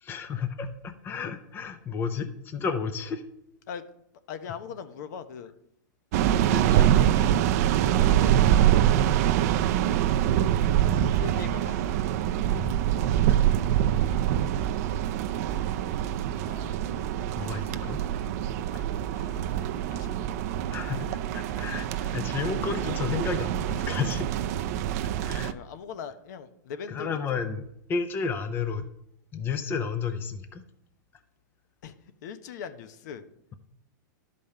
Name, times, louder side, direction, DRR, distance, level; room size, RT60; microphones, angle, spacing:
voice 1, 0.0-3.2 6.2-7.4 12.5-12.7 17.4-18.0 18.7-18.8 20.7-24.2 25.0-25.5 26.9-27.6 27.9-28.9 29.3-30.6, left 5 dB, 20° left, 9 dB, 0.7 m, -32 dB
voice 2, 4.3-5.5 7.9-8.4 11.1-11.9 16.4-17.1 19.1-20.3 25.4-27.4 31.8-31.9 32.2-33.2, left 7 dB, 60° left, 11 dB, 1.0 m, -41 dB
sound 1, 6.1-25.5, right 11 dB, 50° right, 0.6 m, -25 dB
11.5 x 5.4 x 6.7 m, 0.79 s
supercardioid pair, 145°, 10 cm